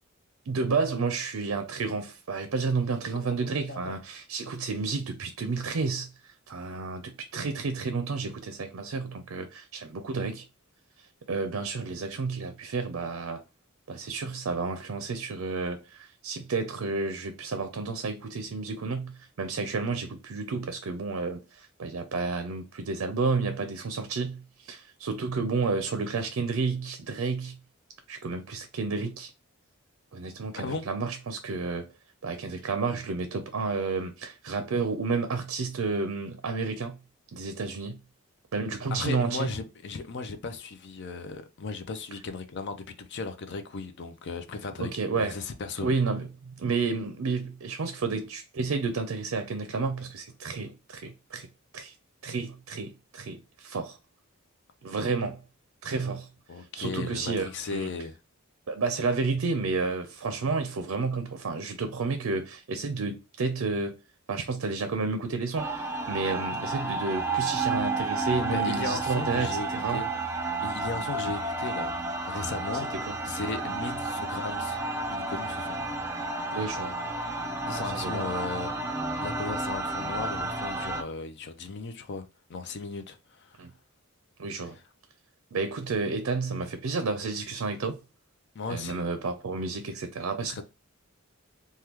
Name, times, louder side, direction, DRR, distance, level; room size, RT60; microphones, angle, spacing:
voice 1, 0.5-10.4 11.3-13.4 13.9-27.6 28.1-29.3 30.1-31.9 32.2-37.0 37.3-38.0 38.5-39.5 44.8-45.4 45.8-51.5 51.7-51.9 52.2-54.0 54.8-55.4 55.8-56.3 56.7-57.9 58.7-64.0 64.3-70.0 72.9-73.1 76.5-77.0 77.8-78.3 83.6-83.7 84.4-84.8 85.5-88.0 88.7-90.6, right 4 dB, 70° right, 0.5 m, -31 dB
voice 2, 3.2-3.9 30.6-30.9 38.9-45.9 56.5-58.2 68.5-70.1 70.6-72.9 73.2-74.8 75.1-75.8 77.7-78.7 79.2-83.6 84.7-84.8 88.5-89.0 90.5-90.6, left 4 dB, 55° left, 0.4 m, -36 dB
sound 1, 65.6-81.0, right 3 dB, 10° right, 0.5 m, -31 dB
3.5 x 2.2 x 2.9 m
head